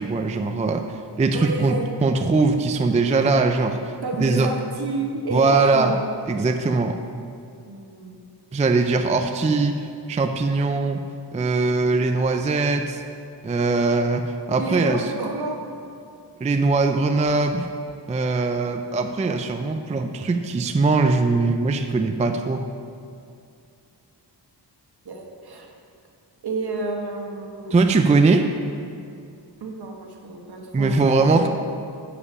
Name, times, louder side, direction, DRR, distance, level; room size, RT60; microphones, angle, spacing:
voice 1, 0.0-3.9 4.2-4.5 5.3-6.0 6.3-7.0 8.5-11.0 11.3-13.0 13.4-15.1 16.4-17.7 18.1-22.6 27.7-28.5 30.7-31.5, right 3 dB, 20° right, 6 dB, 0.3 m, -21 dB
voice 2, 1.3-1.9 4.0-6.0 7.6-8.2 14.6-15.7 25.0-25.7 26.4-27.7 29.6-31.4, right 3 dB, 60° right, 1 dB, 1.2 m, -30 dB
9.7 x 5.1 x 5.5 m, 2.5 s
wide cardioid pair, 110°, 43 cm